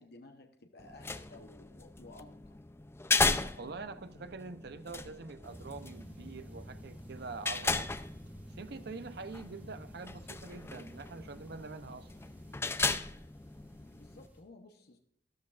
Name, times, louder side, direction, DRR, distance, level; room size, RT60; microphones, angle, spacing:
voice 1, 0.0-2.6 13.9-15.0, left 2 dB, 65° left, 0.9 m, -55 dB
sound 1, 0.8-14.3, left 3 dB, 15° left, 0.4 m, -37 dB
voice 2, 3.6-7.9 8.6-12.1, right 4 dB, 65° right, 0.7 m, -45 dB
sound 2, 5.4-14.4, equal, 10° right, 2.1 m, -52 dB
13.0 x 12.5 x 2.5 m
head